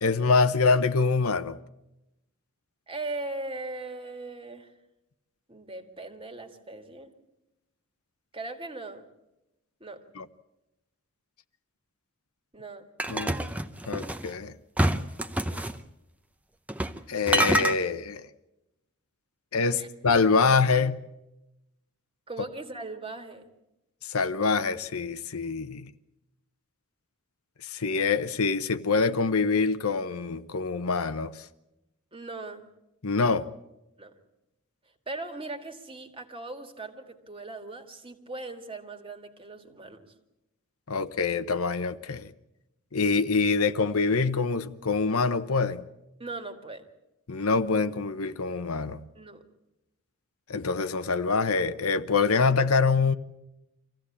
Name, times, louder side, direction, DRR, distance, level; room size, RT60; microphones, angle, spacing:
voice 1, 0.0-1.6 10.2-10.3 13.1-13.4 13.9-14.5 17.1-18.3 19.5-21.0 24.0-25.9 27.6-31.4 33.0-33.5 40.9-42.3 42.9-45.9 47.3-49.0 50.5-53.1, left 4 dB, 75° left, 0.9 m, -25 dB
voice 2, 2.9-4.7 5.5-7.1 8.3-9.0 9.8-10.0 12.5-13.5 19.7-19.9 22.3-23.5 32.1-32.7 34.0-34.1 35.1-40.0 46.2-46.9 49.1-49.4, right 2 dB, 25° right, 1.8 m, -39 dB
sound 1, 13.0-14.3 14.8-15.8 16.7-17.0 17.3-17.8, right 1 dB, 5° right, 0.7 m, -26 dB
25.0 x 15.5 x 8.5 m
head